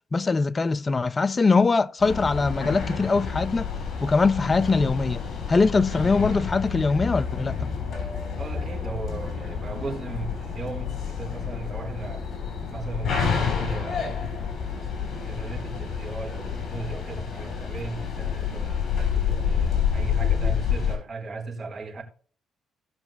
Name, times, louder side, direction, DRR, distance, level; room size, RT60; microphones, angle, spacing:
voice 1, 0.1-3.7 4.0-5.2 5.5-7.7, left 4 dB, 30° left, 0.5 m, -22 dB
sound 1, 2.0-21.0, left 6 dB, 50° left, 4.7 m, -29 dB
voice 2, 8.4-12.3 12.7-14.3 14.7-22.0, right 3 dB, 35° right, 4.1 m, -37 dB
17.0 x 6.1 x 3.2 m
cardioid pair, 90°, 0 cm